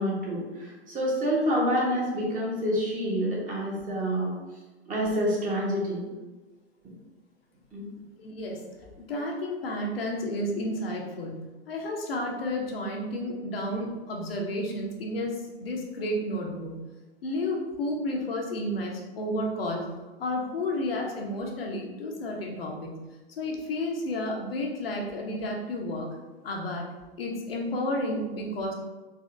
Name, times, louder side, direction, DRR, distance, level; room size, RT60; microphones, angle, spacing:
voice 1, 0.0-4.4 4.9-6.1 7.7-7.9, equal, 25° right, -4 dB, 1.2 m, -27 dB
voice 2, 8.2-8.6 9.1-16.8 17.2-19.9 20.2-23.0 23.4-26.1 26.4-26.8 27.2-28.7, left 1 dB, 65° left, 0 dB, 0.8 m, -31 dB
4.2 x 2.8 x 2.5 m, 1.2 s
figure-of-eight pair, 95°, 32 cm